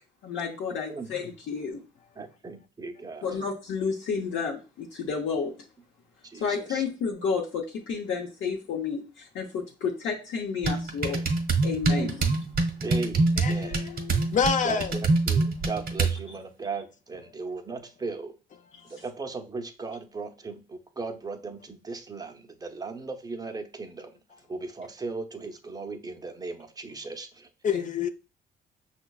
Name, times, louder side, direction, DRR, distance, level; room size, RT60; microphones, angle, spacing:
voice 1, 0.2-1.8 3.2-5.5 6.4-11.2 11.6-12.2 18.8-18.9 27.7-27.9, left 5 dB, 75° left, 0.8 m, -31 dB
voice 2, 2.2-3.3 6.3-6.8 11.9-12.2 12.8-13.9 14.6-18.3 18.8-24.2 24.5-27.5, right 4 dB, 20° right, 0.6 m, -37 dB
sound 1, 10.6-16.2, right 3 dB, 50° right, 0.8 m, -25 dB
voice 3, 13.4-14.9 27.6-28.1, left 7 dB, 40° left, 0.4 m, -27 dB
5.8 x 2.1 x 2.3 m
cardioid pair, 90°, 20 cm